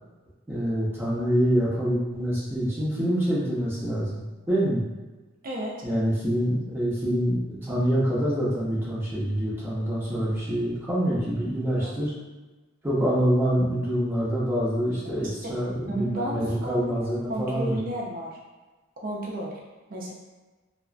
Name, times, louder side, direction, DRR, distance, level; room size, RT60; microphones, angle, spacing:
voice 1, 0.5-4.8 5.8-12.1 12.8-17.8, equal, 10° right, -9 dB, 0.7 m, -26 dB
voice 2, 15.9-18.4 19.0-19.6 19.9-20.1, right 1 dB, 45° right, -3 dB, 0.4 m, -33 dB
2.5 x 2.1 x 2.4 m, 1.2 s
head